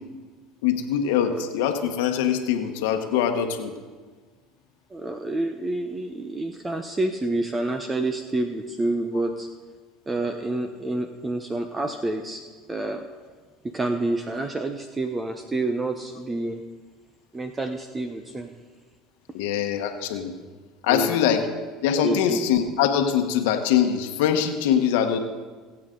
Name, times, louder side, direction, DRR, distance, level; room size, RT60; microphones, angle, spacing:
voice 1, 0.6-3.7 19.3-20.3 20.8-21.4 21.8-25.2, left 8 dB, 80° left, 5 dB, 1.1 m, -23 dB
voice 2, 4.9-9.5 10.1-12.4 12.7-13.0 13.6-16.6 17.3-18.5 20.9-21.2 22.0-22.4, right 2 dB, 20° right, 7 dB, 0.8 m, -28 dB
21.0 x 8.0 x 3.8 m, 1.4 s
supercardioid pair, 95°, 0 cm